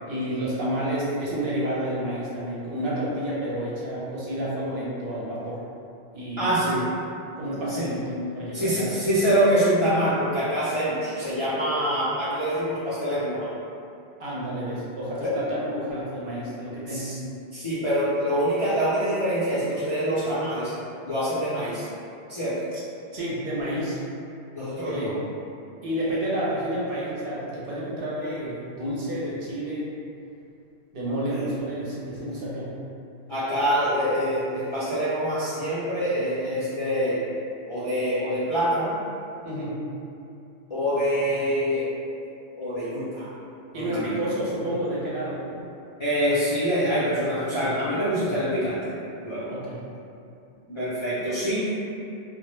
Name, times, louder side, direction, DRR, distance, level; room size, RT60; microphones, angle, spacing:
voice 1, 0.0-5.6 6.1-6.7 7.4-8.9 14.2-17.2 23.1-24.0 24.9-25.1 25.8-29.9 30.9-32.7 39.4-39.8 43.7-45.6 48.2-48.3 49.5-49.8, right 1 dB, 65° right, -7 dB, 0.7 m, -30 dB
voice 2, 6.4-6.9 7.7-7.9 8.1-13.5 15.2-15.3 16.9-20.7 21.1-21.8 22.3-22.5 24.5-25.1 31.1-31.4 33.3-37.2 37.7-38.9 40.7-41.9 42.6-43.3 43.7-44.2 46.0-48.9 49.2-49.5 50.7-51.7, equal, 45° left, -13 dB, 0.4 m, -25 dB
2.0 x 2.0 x 3.0 m, 2.6 s
omnidirectional pair, 1.1 m